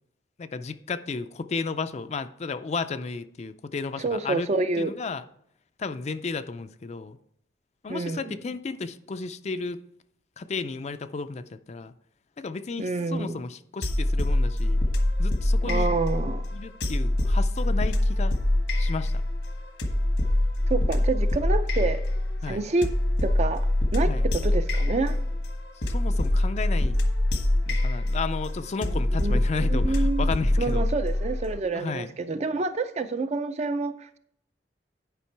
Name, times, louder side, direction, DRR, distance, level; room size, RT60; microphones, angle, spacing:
voice 1, 0.4-4.5 4.8-5.2 5.8-7.2 7.8-9.8 10.4-11.9 12.4-14.8 15.2-15.9 16.5-18.4 18.8-19.2 22.4-22.6 24.1-24.3 25.9-27.0 27.7-30.8 31.7-32.1, left 4 dB, 40° left, 0.4 m, -33 dB
voice 2, 4.0-4.9 7.9-8.4 12.8-13.4 15.6-16.5 20.7-22.0 22.5-22.9 23.2-23.7 23.9-25.2 28.9-30.3 30.6-34.2, right 3 dB, 40° right, 0.5 m, -28 dB
sound 1, 13.8-31.6, left 1 dB, 80° left, 1.3 m, -24 dB
10.0 x 5.2 x 4.5 m
head